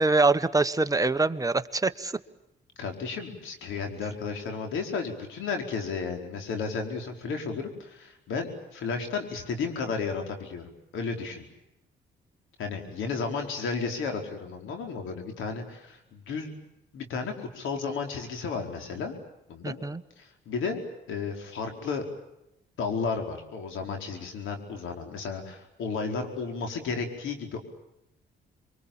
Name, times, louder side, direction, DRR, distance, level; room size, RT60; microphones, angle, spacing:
voice 1, 0.0-2.1 19.6-20.0, right 3 dB, 15° right, 10 dB, 1.2 m, -24 dB
voice 2, 2.8-10.6 10.9-11.5 12.6-16.5 16.9-19.1 19.5-19.8 20.2-20.8 21.1-22.0 22.8-27.6, left 5 dB, 80° left, 4 dB, 4.9 m, -33 dB
27.5 x 23.5 x 8.9 m, 0.87 s
cardioid pair, 90°, 20 cm